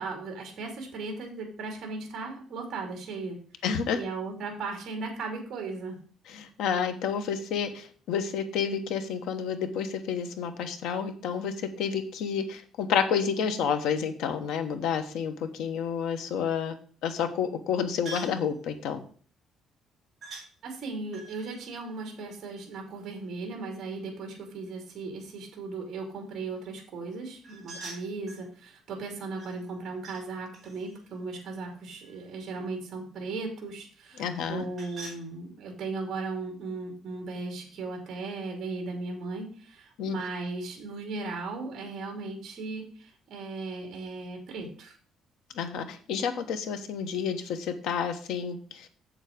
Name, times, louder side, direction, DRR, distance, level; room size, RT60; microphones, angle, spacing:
voice 1, 0.0-3.4 3.9-6.0 20.6-45.0, right 3 dB, 40° right, 2 dB, 2.8 m, -37 dB
voice 2, 3.6-4.0 6.3-16.7 17.0-19.0 34.2-34.6 40.0-40.2 45.5-48.9, left 7 dB, 80° left, 8 dB, 1.3 m, -30 dB
sound 1, 18.0-18.4 20.2-20.5 21.1-22.9 27.4-28.5 29.4-30.2 30.5-32.4 34.3-35.2, right 2 dB, 20° right, 4.8 m, -46 dB
7.5 x 7.2 x 5.2 m, 0.44 s
cardioid pair, 175°, 0 cm